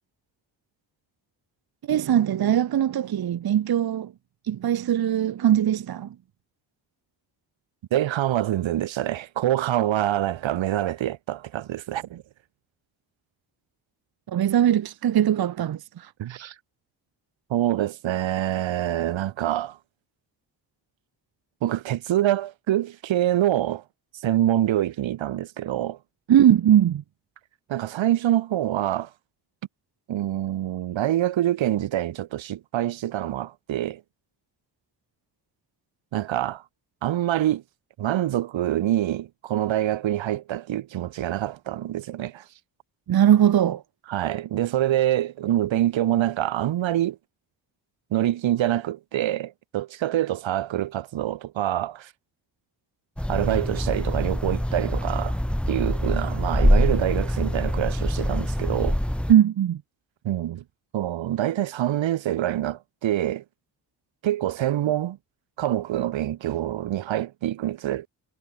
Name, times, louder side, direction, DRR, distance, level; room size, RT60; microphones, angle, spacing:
voice 1, 1.9-4.1 4.5-6.1 14.3-16.1 26.3-27.0 43.1-43.8 59.3-59.8, right 10 dB, 55° right, 0.9 m, -20 dB
voice 2, 7.9-12.2 16.2-16.5 17.5-19.8 21.6-23.8 24.2-26.0 27.7-29.1 30.1-34.0 36.1-36.6 37.0-37.6 38.0-42.4 44.1-47.2 48.1-52.1 53.3-55.4 55.7-59.0 60.2-60.6 60.9-63.4 64.2-65.2 65.6-68.1, right 13 dB, 80° right, 1.6 m, -25 dB
sound 1, 53.2-59.3, equal, ahead, 1.7 m, -24 dB
cardioid pair, 70°, 45 cm